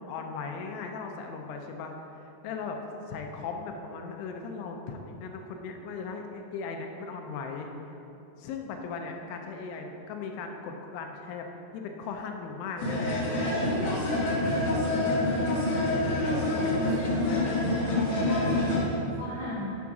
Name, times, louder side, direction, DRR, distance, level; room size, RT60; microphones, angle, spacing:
voice 1, 0.0-2.8 3.1-7.7 8.4-11.5 11.7-13.1, left 5 dB, 85° left, 3 dB, 2.4 m, -38 dB
sound 1, 12.8-18.8, left 2 dB, 65° left, 1.7 m, -27 dB
voice 2, 15.0-15.6 16.2-19.7, right 1 dB, 60° right, -9 dB, 2.8 m, -37 dB
7.2 x 3.6 x 5.9 m, 2.9 s
omnidirectional pair, 5.1 m